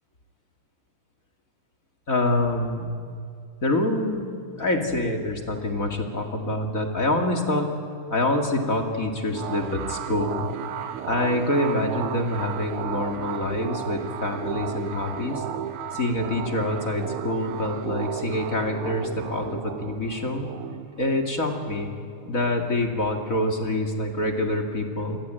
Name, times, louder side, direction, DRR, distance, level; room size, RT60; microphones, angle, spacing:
voice 1, 2.1-3.0 3.6-7.8 8.1-10.5 11.0-15.4 15.9-20.5 21.0-21.9 22.3-25.2, left 1 dB, 30° left, 3 dB, 2.1 m, -26 dB
sound 1, 9.3-22.5, right 9 dB, 70° right, 1.3 m, -34 dB
28.0 x 22.0 x 9.0 m, 2.3 s
omnidirectional pair, 3.7 m